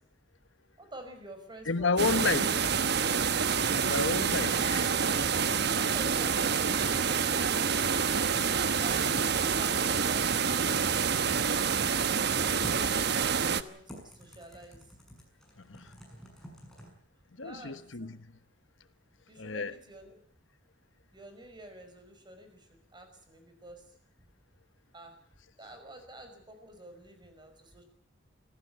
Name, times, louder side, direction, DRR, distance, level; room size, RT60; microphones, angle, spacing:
voice 1, 0.8-2.5 5.7-8.1 12.1-14.9 17.3-18.2 19.3-20.1 21.1-23.9 24.9-25.1 25.6-27.8, right 1 dB, 25° right, 5.6 m, -49 dB
voice 2, 1.7-2.7 3.0-3.4 3.7-5.4 15.6-15.9 17.4-18.3 19.4-19.7, left 4 dB, 85° left, 1.3 m, -32 dB
sound 1, 2.0-13.6, right 6 dB, 60° right, 1.1 m, -27 dB
Typing, 12.6-16.9, equal, 5° left, 6.7 m, -50 dB
25.0 x 15.5 x 8.4 m
head